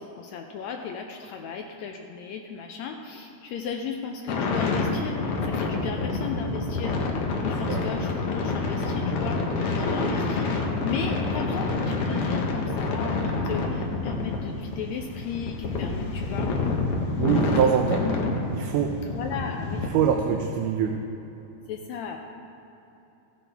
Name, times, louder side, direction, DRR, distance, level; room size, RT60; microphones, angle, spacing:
voice 1, 0.0-7.0 7.4-9.4 9.8-16.6 17.4-18.3 19.0-19.9 21.7-22.2, left 6 dB, 80° left, 3 dB, 1.6 m, -35 dB
sound 1, 4.3-19.9, left 3 dB, 65° left, 1.5 m, -28 dB
voice 2, 17.2-18.0 18.5-19.0 19.9-21.0, right 8 dB, 80° right, 3 dB, 2.1 m, -23 dB
15.5 x 10.0 x 3.4 m, 3.0 s
omnidirectional pair, 3.8 m